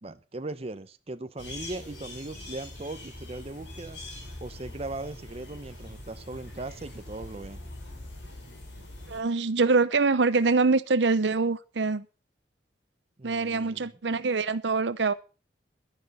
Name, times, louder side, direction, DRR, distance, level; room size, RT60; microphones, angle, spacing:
voice 1, 0.0-4.0 4.4-7.6 13.2-13.9, right 2 dB, 35° right, 0.7 m, -39 dB
sound 1, 1.4-9.2, left 1 dB, 80° left, 6.0 m, -43 dB
voice 2, 9.1-12.0 13.2-15.1, right 4 dB, 80° right, 0.8 m, -24 dB
12.0 x 10.5 x 5.4 m
head